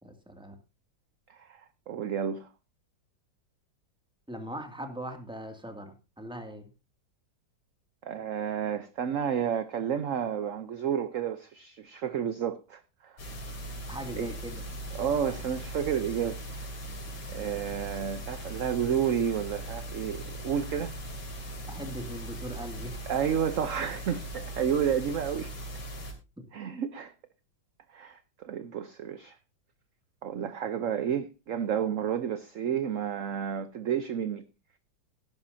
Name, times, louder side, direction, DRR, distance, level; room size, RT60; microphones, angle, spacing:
voice 1, 0.0-0.6 4.3-6.7 13.9-14.6 21.7-23.0 26.4-26.5, equal, 5° right, 2.1 m, -40 dB
voice 2, 1.3-2.5 8.0-13.1 14.2-14.3 14.9-16.6 17.3-20.9 23.1-25.5 26.5-27.1 27.9-29.4 30.2-34.5, right 8 dB, 55° right, 0.9 m, -31 dB
sound 1, 13.2-26.1, right 1 dB, 90° left, 3.6 m, -39 dB
17.5 x 10.5 x 2.7 m
omnidirectional pair, 2.1 m